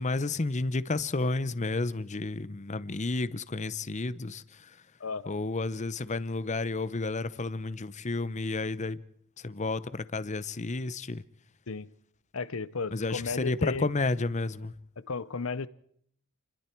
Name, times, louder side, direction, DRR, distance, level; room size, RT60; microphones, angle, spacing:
voice 1, 0.0-4.4 5.3-9.0 9.4-11.2 12.9-14.7, left 3 dB, 35° left, 0.8 m, -31 dB
voice 2, 5.0-5.4 11.7-11.9 12.3-13.9 15.1-15.7, left 4 dB, 70° left, 0.8 m, -34 dB
29.5 x 21.5 x 4.6 m
head